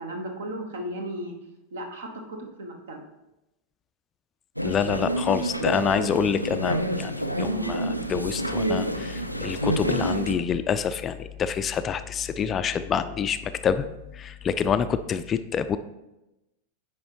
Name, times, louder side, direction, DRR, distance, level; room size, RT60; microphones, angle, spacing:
voice 1, 0.0-1.3 1.7-3.0, right 1 dB, 60° right, 4 dB, 1.1 m, -35 dB
voice 2, 4.6-13.9 14.1-15.8, left 7 dB, 25° left, 12 dB, 0.3 m, -27 dB
sound 1, 4.6-10.3, right 1 dB, 90° right, 0.4 m, -28 dB
9.2 x 4.9 x 3.0 m, 0.96 s
figure-of-eight pair, 90°, 0 cm